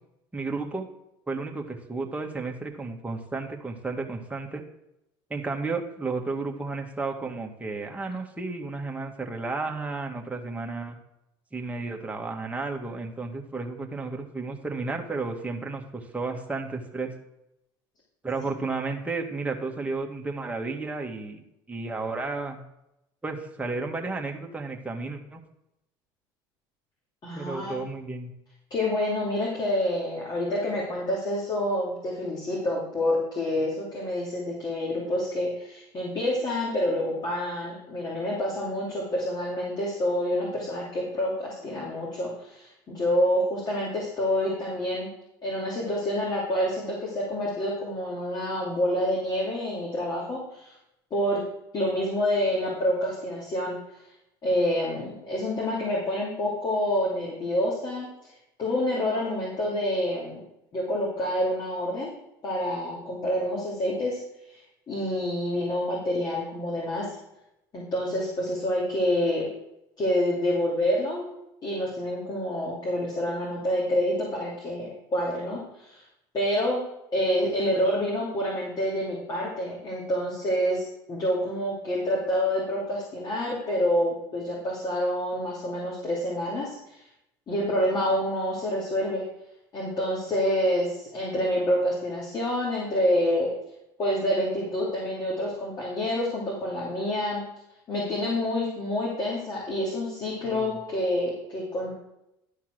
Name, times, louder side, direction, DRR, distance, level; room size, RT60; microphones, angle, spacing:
voice 1, 0.3-0.9 1.3-4.6 5.3-11.0 11.5-17.1 18.2-22.6 23.2-25.4 27.3-28.3 100.4-100.7, right 3 dB, 10° right, 1 dB, 1.7 m, -32 dB
voice 2, 27.2-27.8 28.7-45.1 45.4-50.7 51.1-51.4 51.7-53.7 54.4-58.1 58.6-60.4 60.7-62.1 62.4-64.2 64.5-64.6 64.9-67.1 67.7-69.5 70.0-71.3 71.6-76.0 76.3-76.8 77.1-87.0 87.5-89.2 89.7-93.5 94.0-97.4 97.9-101.9, left 1 dB, 40° left, -4 dB, 2.9 m, -27 dB
12.0 x 4.5 x 6.2 m, 0.85 s
supercardioid pair, 85°, 11 cm